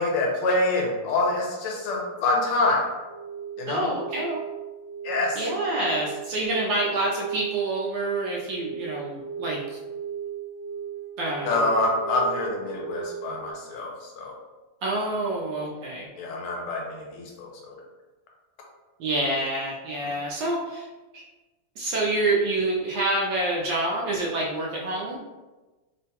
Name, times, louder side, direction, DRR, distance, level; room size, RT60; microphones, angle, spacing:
voice 1, 0.0-2.9 3.6-3.9 5.0-5.5 11.5-14.3 16.2-17.8 20.0-20.2, left 2 dB, 85° left, -1 dB, 1.5 m, -26 dB
sound 1, 3.1-13.5, right 8 dB, 25° left, 0.8 m, -37 dB
voice 2, 3.7-4.4 5.4-9.8 11.2-11.7 14.8-16.1 19.0-20.9 21.1-21.2 21.8-25.2, right 2 dB, 75° right, -3 dB, 1.1 m, -27 dB
3.7 x 2.2 x 2.8 m, 1.2 s
omnidirectional pair, 2.4 m